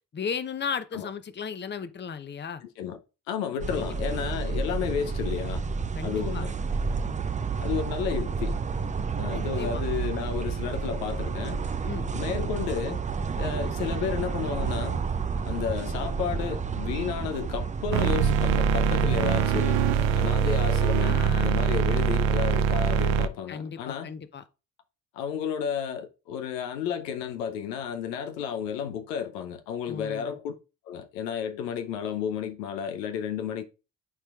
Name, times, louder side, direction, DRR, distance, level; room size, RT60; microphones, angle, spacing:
voice 1, 0.1-2.6 3.7-3.9 5.9-6.5 9.3-9.8 11.8-12.1 21.0-21.6 23.5-24.4 29.9-30.4, left 6 dB, 20° left, 0.7 m, -35 dB
voice 2, 3.3-5.6 6.0-6.5 7.6-8.6 9.2-11.6 12.1-13.0 13.4-15.0 15.4-19.8 20.1-24.1 25.1-30.5 30.9-33.6, left 8 dB, 80° left, 0.8 m, -32 dB
sound 1, 3.6-20.3, right 5 dB, 15° right, 0.4 m, -30 dB
sound 2, 17.9-23.3, right 7 dB, 65° right, 0.7 m, -23 dB
11.5 x 4.4 x 2.4 m
hypercardioid pair, 45°, 49 cm